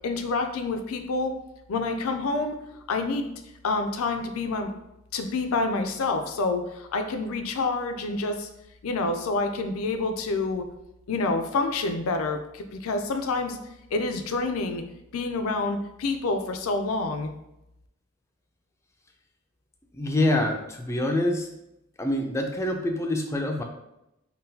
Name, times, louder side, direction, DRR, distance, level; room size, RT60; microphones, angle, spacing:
voice 1, 0.0-1.3 1.7-2.6 2.9-3.3 3.6-4.7 5.1-8.5 8.8-10.7 11.1-13.6 13.9-14.8 15.1-17.3, left 3 dB, 90° left, 6 dB, 0.4 m, -27 dB
voice 2, 19.9-21.5 22.0-23.6, left 1 dB, 15° left, 3 dB, 0.3 m, -26 dB
3.7 x 2.2 x 2.7 m, 0.86 s
head